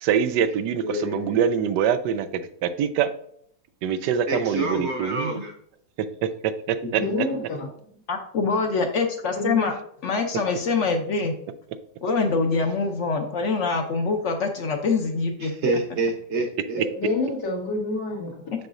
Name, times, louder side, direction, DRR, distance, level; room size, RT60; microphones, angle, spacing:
voice 1, 0.0-3.1 3.8-5.4 6.0-7.0, right 8 dB, 85° right, 11 dB, 1.2 m, -24 dB
voice 2, 0.8-1.4 4.3-5.5 6.8-7.1 15.4-16.8, right 2 dB, 50° right, 3 dB, 1.0 m, -28 dB
voice 3, 6.9-7.7 9.3-9.7 16.7-18.5, left 2 dB, 90° left, -2 dB, 2.3 m, -28 dB
voice 4, 8.1-9.7 10.0-11.3 12.0-15.5, left 4 dB, 60° left, 4 dB, 0.8 m, -24 dB
6.5 x 6.0 x 2.5 m, 0.67 s
omnidirectional pair, 1.8 m